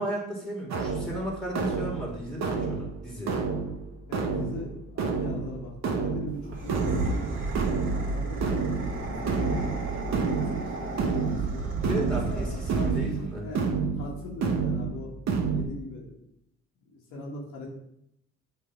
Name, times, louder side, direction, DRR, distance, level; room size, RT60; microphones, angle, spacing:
voice 1, 0.0-3.3 11.8-13.4, right 1 dB, ahead, -2 dB, 2.1 m, -34 dB
sound 1, 0.7-15.6, right 5 dB, 60° right, 1.0 m, -30 dB
voice 2, 4.1-7.4 7.7-11.7 12.0-15.1 15.5-16.1 16.9-17.7, left 2 dB, 90° left, -3 dB, 1.7 m, -40 dB
sound 2, 6.4-13.2, right 3 dB, 40° right, 1.8 m, -32 dB
7.4 x 3.4 x 4.6 m, 0.76 s
cardioid pair, 90°, 30 cm